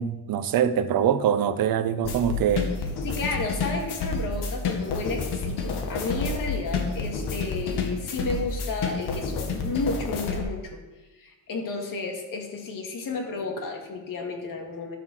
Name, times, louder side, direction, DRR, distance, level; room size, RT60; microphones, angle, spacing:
voice 1, 0.0-2.8, right 8 dB, 60° right, 12 dB, 0.7 m, -24 dB
sound 1, 2.0-10.4, left 4 dB, 75° left, 2.1 m, -30 dB
voice 2, 3.0-10.8 11.1-15.0, left 3 dB, 55° left, 2 dB, 2.4 m, -32 dB
13.0 x 7.4 x 6.4 m, 1.1 s
cardioid pair, 170°, 40 cm